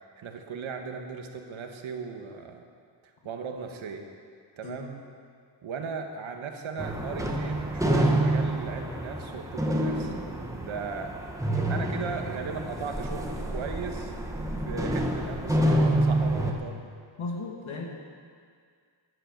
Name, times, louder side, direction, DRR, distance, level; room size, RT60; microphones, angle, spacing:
voice 1, 0.2-2.6 3.2-4.1 4.6-5.0 5.6-10.1 10.5-14.1 14.6-16.9, right 5 dB, 80° right, 4 dB, 1.6 m, -37 dB
sound 1, 6.8-16.5, right 1 dB, 5° right, 1.4 m, -28 dB
voice 2, 17.2-17.8, left 3 dB, 90° left, 0 dB, 2.5 m, -35 dB
14.0 x 10.0 x 6.6 m, 2.1 s
wide cardioid pair, 130°, 47 cm